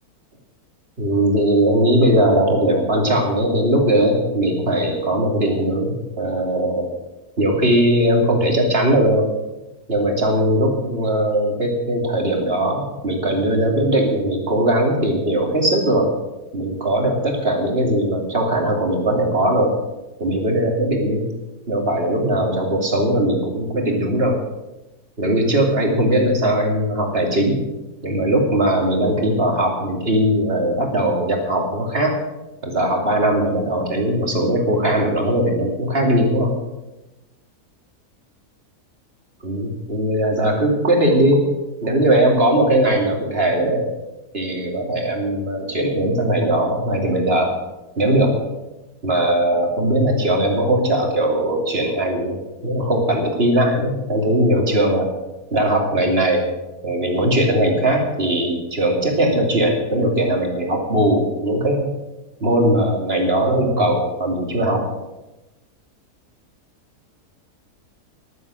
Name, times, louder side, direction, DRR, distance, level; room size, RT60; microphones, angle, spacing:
voice 1, 1.0-6.9 7.4-9.3 9.9-16.1 16.5-19.8 20.2-21.3 21.7-24.4 25.2-27.6 28.0-32.1 32.6-36.6 39.4-41.4 41.8-43.9 44.3-47.5 48.0-48.4 49.0-55.1 55.5-56.5 56.8-61.9 62.4-64.9, right 1 dB, 40° right, 1 dB, 3.0 m, -19 dB
14.0 x 11.5 x 6.3 m, 1.0 s
omnidirectional pair, 1.7 m